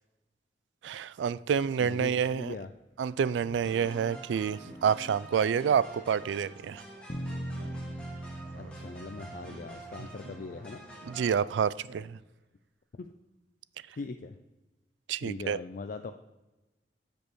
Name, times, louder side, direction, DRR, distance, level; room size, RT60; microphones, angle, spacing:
voice 1, 0.8-2.5 3.0-6.8 11.1-12.2 15.1-15.6, right 7 dB, 90° right, 18 dB, 0.3 m, -28 dB
voice 2, 1.8-2.7 8.6-10.8 13.0-13.1 14.0-14.4 15.2-16.1, left 4 dB, 50° left, 7 dB, 0.4 m, -40 dB
Speech synthesizer, 2.4-2.6 3.0-3.1 3.4-3.7 4.1-4.2 4.6-4.8 5.1-5.2 5.5-5.8 6.6-6.8 7.5-8.1 8.5-9.1 9.4-9.6 10.2-10.4 11.0-11.5 11.8-12.4, right 2 dB, 70° right, 0.7 m, -51 dB
sound 1, 3.6-11.4, right 2 dB, 5° left, 1.8 m, -47 dB
sound 2, 7.1-11.2, right 1 dB, 35° left, 0.8 m, -41 dB
15.0 x 5.2 x 3.1 m, 1.1 s
head